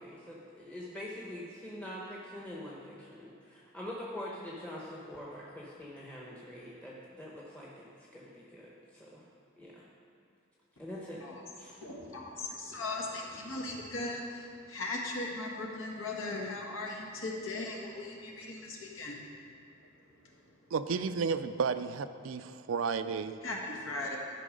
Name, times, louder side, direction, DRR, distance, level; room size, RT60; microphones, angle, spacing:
voice 1, 0.0-9.2 9.6-9.8 10.8-11.2 11.6-11.8, left 1 dB, 5° left, -5 dB, 0.9 m, -44 dB
voice 2, 11.8-19.2 23.4-24.2, left 2 dB, 70° left, -1 dB, 1.5 m, -38 dB
voice 3, 20.7-23.4, right 5 dB, 75° right, 12 dB, 0.4 m, -32 dB
12.5 x 5.6 x 5.1 m, 2.8 s
head